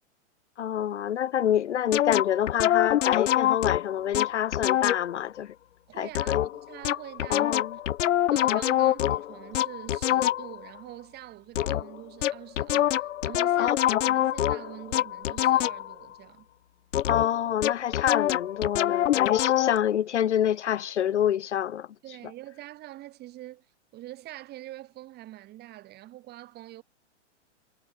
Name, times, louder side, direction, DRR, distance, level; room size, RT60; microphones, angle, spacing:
voice 1, 0.6-5.6 6.0-6.4 7.3-7.8 13.6-13.7 17.1-21.9, left 10 dB, 70° left, 3.8 m, -27 dB
sound 1, 1.9-5.2 6.2-10.7 11.6-12.0 12.2-16.0 16.9-19.8, left 12 dB, 85° left, 0.6 m, -25 dB
voice 2, 5.9-7.5 8.3-13.8 14.1-16.5 22.0-23.7 23.9-26.8, right 15 dB, 25° right, 7.6 m, -45 dB
hypercardioid pair, 140°, 36 cm